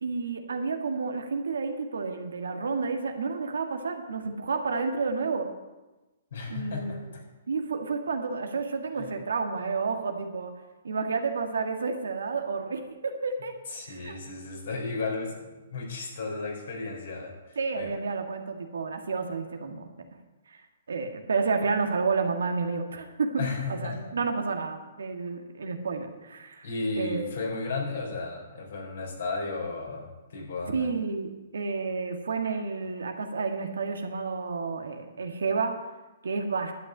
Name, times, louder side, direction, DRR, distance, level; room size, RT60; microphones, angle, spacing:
voice 1, 0.0-5.5 6.5-7.1 7.5-10.5 10.8-13.5 13.9-14.2 17.5-19.9 20.5-20.6 20.9-26.7 26.9-27.2 30.7-35.7 36.2-36.7, right 4 dB, 85° right, 5 dB, 1.6 m, -30 dB
voice 2, 6.3-7.2 9.0-9.1 13.7-17.9 23.4-24.1 26.6-30.9, left 3 dB, 70° left, -1 dB, 4.2 m, -34 dB
11.5 x 5.9 x 8.7 m, 1.1 s
hypercardioid pair, 140°, 0 cm